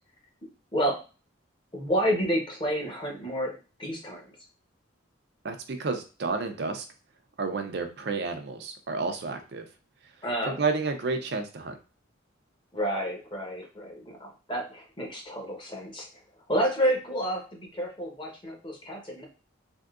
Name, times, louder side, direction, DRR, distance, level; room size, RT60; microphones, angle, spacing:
voice 1, 1.7-3.5 3.8-4.2 10.2-10.6 12.7-16.1 16.5-19.3, equal, 25° left, 0 dB, 0.9 m, -29 dB
voice 2, 5.4-6.8 7.4-9.6 10.5-11.7, right 4 dB, 55° right, 6 dB, 0.4 m, -30 dB
3.6 x 2.7 x 2.4 m, 0.33 s
head